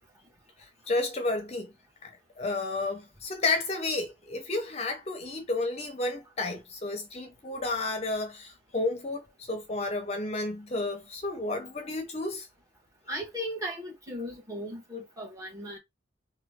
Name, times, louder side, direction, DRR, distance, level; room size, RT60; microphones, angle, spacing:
voice 1, 0.6-1.7 2.0-12.5, left 2 dB, 35° left, 0.6 m, -32 dB
voice 2, 13.1-15.8, equal, 20° right, 1.3 m, -37 dB
3.0 x 2.2 x 3.5 m
head